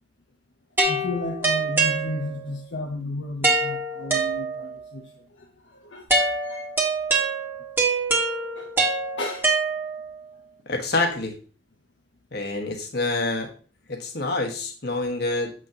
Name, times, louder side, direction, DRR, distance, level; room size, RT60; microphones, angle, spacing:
sound 1, 0.8-2.6 3.4-4.9 6.1-10.2, right 3 dB, 15° right, 1.5 m, -25 dB
voice 1, 0.9-5.0 5.7-6.7 8.6-8.7 9.2-9.5, left 1 dB, 80° left, 1 dB, 0.9 m, -33 dB
voice 2, 10.7-11.3 12.3-13.5 13.9-15.5, left 2 dB, 65° left, 2 dB, 1.6 m, -27 dB
7.5 x 6.2 x 2.9 m, 0.38 s
head